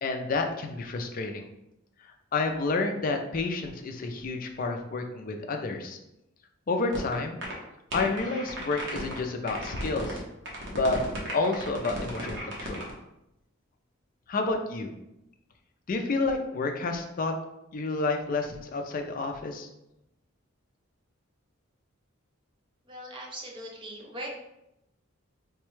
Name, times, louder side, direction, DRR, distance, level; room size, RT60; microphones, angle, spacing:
voice 1, 0.0-1.5 2.3-6.0 6.7-7.4 7.9-10.2 10.7-11.0 11.3-12.8 14.3-14.9 15.9-17.3 17.7-19.7, left 3 dB, 40° left, 4 dB, 0.4 m, -29 dB
sound 1, 6.9-7.1 7.4-7.5 7.9-9.2 9.5-10.2 10.5-12.9, right 1 dB, 60° right, 0.9 m, -36 dB
voice 2, 22.9-24.3, right 1 dB, 25° right, -1 dB, 0.6 m, -40 dB
4.0 x 2.2 x 3.1 m, 0.87 s
head